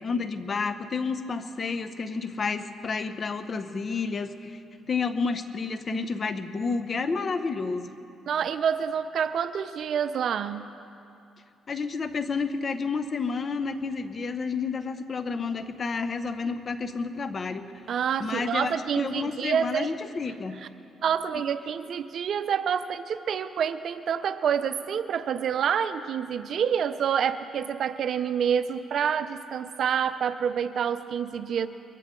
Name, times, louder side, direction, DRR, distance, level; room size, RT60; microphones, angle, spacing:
voice 1, 0.0-4.6 4.9-7.9 11.7-17.7 18.2-20.6, left 4 dB, 40° left, 10 dB, 0.9 m, -30 dB
voice 2, 8.3-10.7 17.9-19.9 21.0-31.7, right 8 dB, 65° right, 12 dB, 0.6 m, -27 dB
22.5 x 15.0 x 3.8 m, 2.6 s
cardioid pair, 90°, 0 cm